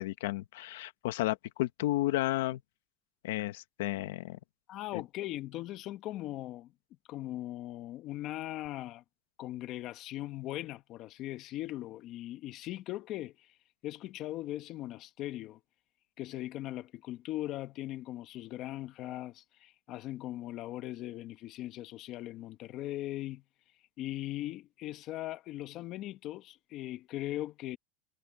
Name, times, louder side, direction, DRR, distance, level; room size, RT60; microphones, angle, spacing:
voice 1, 0.0-2.6 3.2-4.4 4.9-5.0, left 16 dB, 90° left, 1.1 m, -32 dB
voice 2, 4.7-6.7 7.1-9.0 9.4-13.5 13.8-15.6 16.2-23.4 24.0-27.8, left 15 dB, 45° left, 1.2 m, -39 dB
supercardioid pair, 145°, 0 cm